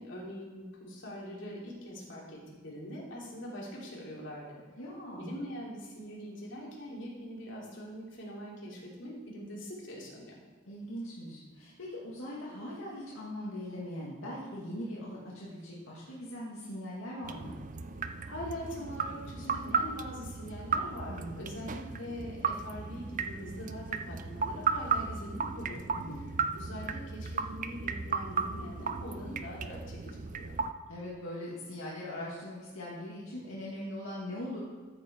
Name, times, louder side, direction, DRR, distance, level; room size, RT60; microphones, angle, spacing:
voice 1, 0.0-4.6 5.2-10.4 18.3-25.9 26.5-30.6, equal, 60° left, -4 dB, 3.4 m, -43 dB
voice 2, 4.8-5.4 10.7-17.5 21.1-21.5 26.0-26.4 30.9-34.6, left 1 dB, 80° left, -6 dB, 2.1 m, -41 dB
sound 1, 17.2-30.7, right 5 dB, 40° right, 0.5 m, -35 dB
13.5 x 7.9 x 4.5 m, 1.4 s
head